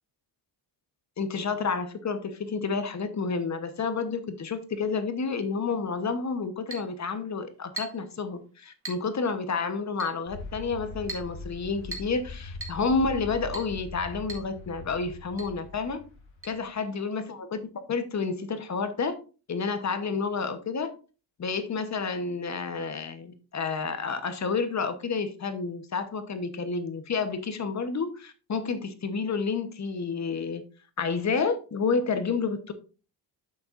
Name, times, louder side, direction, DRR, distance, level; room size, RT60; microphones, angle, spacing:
voice 1, 1.2-16.0 16.5-17.6 17.9-19.2 19.5-20.9 21.4-30.6 31.0-32.7, left 4 dB, 40° left, 1.0 m, -30 dB
Chink clink, 6.7-6.9 7.8-8.1 8.8-9.1 10.0-10.2 11.1-11.3 11.9-12.2 12.6-12.8 13.5-13.7 14.3-14.5 14.8-14.9 15.4-15.5 16.4-16.5, right 2 dB, 30° right, 1.8 m, -39 dB
sound 1, 10.3-16.7, left 2 dB, 80° left, 1.4 m, -42 dB
8.9 x 5.8 x 2.5 m
cardioid pair, 105°, 45 cm